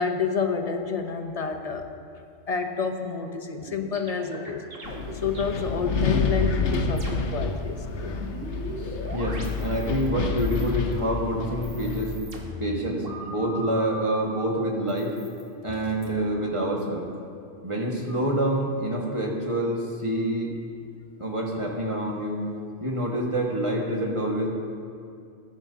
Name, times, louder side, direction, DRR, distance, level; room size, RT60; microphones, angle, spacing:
voice 1, 0.0-1.9 2.5-8.3, left 5 dB, 35° left, 5 dB, 0.7 m, -29 dB
sound 1, 3.5-7.5 7.7-10.1 10.4-11.0 11.5-14.2 14.9-16.1, right 1 dB, 80° right, 1.9 m, -39 dB
Wind, 4.8-12.2, left 4 dB, 65° left, 1.1 m, -29 dB
voice 2, 8.8-12.1 12.6-15.1 15.6-17.1 17.6-20.5 21.2-22.4 22.8-24.5, right 1 dB, 25° right, -2 dB, 1.6 m, -27 dB
20.0 x 10.0 x 2.8 m, 2.4 s
omnidirectional pair, 1.3 m